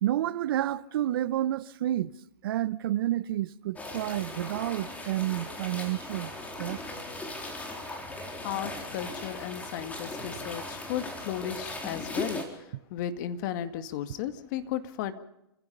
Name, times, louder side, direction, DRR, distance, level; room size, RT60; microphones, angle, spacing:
voice 1, 0.0-2.1 2.4-6.3 6.6-6.8, right 13 dB, 55° right, 1.0 m, -29 dB
sound 1, 3.7-12.4, left 2 dB, 10° left, 4.0 m, -38 dB
voice 2, 8.4-12.4 12.9-15.1, left 10 dB, 45° left, 2.1 m, -34 dB
29.0 x 16.0 x 5.6 m
hypercardioid pair, 130°, 14 cm